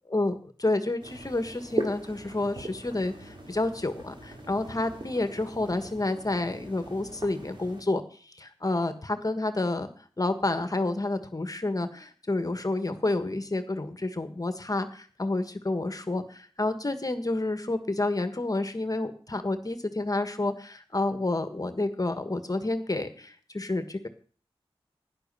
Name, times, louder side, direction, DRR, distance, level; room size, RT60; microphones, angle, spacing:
voice 1, 0.1-8.0 8.4-9.9 10.2-24.1, left 2 dB, 35° left, 9 dB, 1.5 m, -29 dB
sound 1, 1.0-7.8, right 2 dB, 50° right, 3.5 m, -40 dB
11.5 x 10.0 x 5.6 m, 0.43 s
cardioid pair, 45°, 10 cm